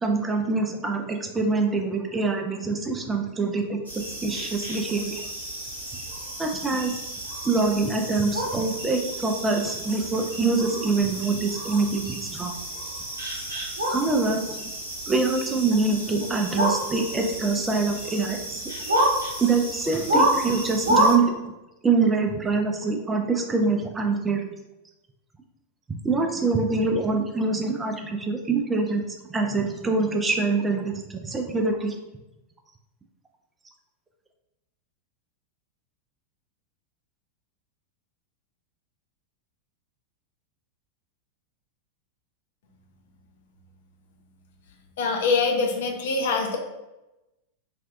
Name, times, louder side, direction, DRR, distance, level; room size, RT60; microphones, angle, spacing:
voice 1, 0.0-3.8 4.2-5.2 6.4-7.0 7.4-12.5 13.9-14.6 15.1-18.6 19.4-21.3 21.8-24.5 25.9-29.0 29.3-32.0, right 3 dB, 15° right, 3 dB, 0.3 m, -25 dB
sound 1, 3.9-21.2, right 1 dB, 75° right, 0.8 m, -29 dB
voice 2, 45.0-46.6, left 4 dB, 60° left, 2 dB, 0.5 m, -24 dB
3.3 x 2.2 x 2.5 m, 0.98 s
figure-of-eight pair, 90°, 0 cm